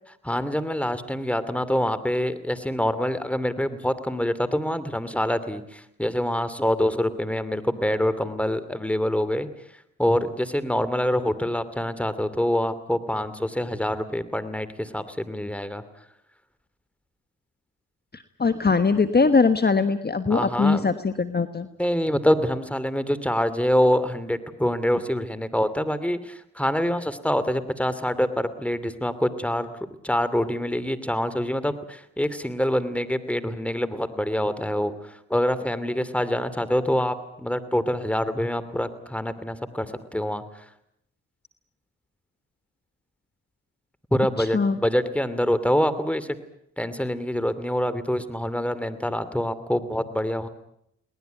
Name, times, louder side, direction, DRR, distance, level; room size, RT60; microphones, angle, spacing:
voice 1, 0.2-15.8 20.3-20.9 21.8-29.7 30.0-40.7 44.1-46.3 46.8-50.5, equal, 5° left, 14 dB, 2.8 m, -25 dB
voice 2, 18.1-21.7 44.4-44.8, left 4 dB, 30° left, 10 dB, 1.4 m, -21 dB
22.5 x 19.0 x 9.3 m, 0.76 s
cardioid pair, 55°, 30 cm